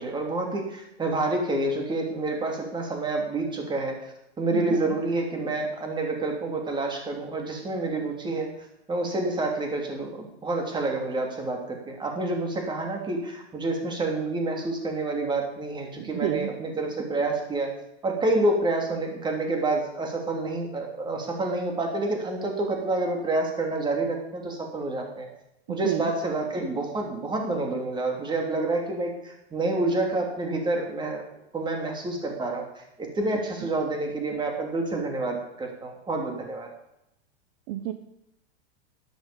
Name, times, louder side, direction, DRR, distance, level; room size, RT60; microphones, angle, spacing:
voice 1, 0.0-4.0 4.4-8.5 8.9-17.7 18.0-25.3 25.7-31.2 31.5-36.7, right 2 dB, 15° right, 2 dB, 3.2 m, -28 dB
voice 2, 4.5-4.9 16.2-16.5 25.8-26.1 37.7-37.9, right 12 dB, 50° right, 8 dB, 1.1 m, -29 dB
13.0 x 12.0 x 5.3 m, 0.84 s
hypercardioid pair, 140°, 32 cm